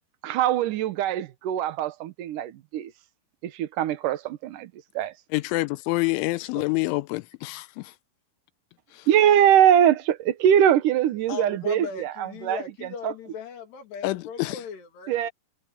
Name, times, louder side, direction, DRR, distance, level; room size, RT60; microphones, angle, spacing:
voice 1, 0.2-2.9 3.4-5.1 9.1-13.1 15.1-15.3, right 10 dB, 85° right, 1.8 m, -22 dB
voice 2, 5.3-7.9 8.9-9.1 14.0-14.6, left 21 dB, 85° left, 3.2 m, -27 dB
voice 3, 11.3-15.2, left 6 dB, 60° left, 4.7 m, -37 dB
omnidirectional pair, 5.4 m